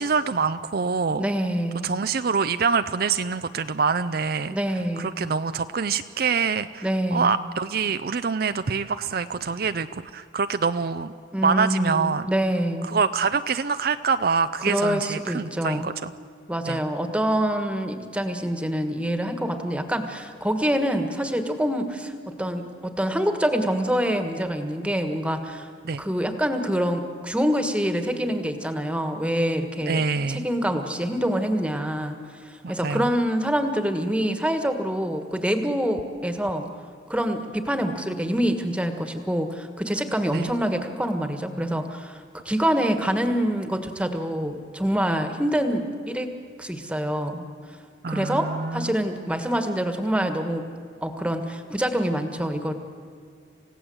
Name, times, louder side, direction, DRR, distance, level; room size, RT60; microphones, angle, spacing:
voice 1, 0.0-1.3 1.8-4.6 5.0-11.1 11.4-12.3 12.8-16.1 16.7-16.8 25.8-26.0 29.9-30.5 32.6-33.1 40.3-40.5 48.0-48.9, right 5 dB, 55° right, 11 dB, 0.5 m, -25 dB
voice 2, 1.2-1.9 4.5-5.1 6.8-7.3 11.3-12.9 14.7-15.9 16.5-25.7 26.0-30.0 30.3-36.7 37.1-46.3 46.6-47.5 48.1-50.7 51.0-52.7, equal, 5° right, 7 dB, 1.5 m, -26 dB
29.0 x 16.5 x 7.9 m, 2.2 s
head